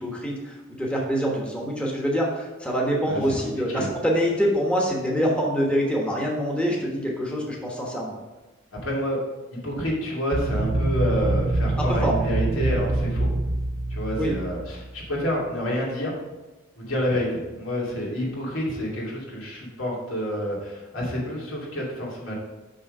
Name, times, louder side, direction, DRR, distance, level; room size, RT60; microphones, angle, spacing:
voice 1, 0.0-8.2 11.9-12.1 14.2-14.3, equal, 5° left, -3 dB, 1.2 m, -25 dB
voice 2, 3.1-3.9 8.8-9.2 9.5-13.3 13.9-16.2 16.8-22.3, equal, 85° left, -4 dB, 2.5 m, -28 dB
sound 1, 10.3-15.0, right 2 dB, 45° right, 0.5 m, -25 dB
6.4 x 5.8 x 5.4 m, 1.1 s
head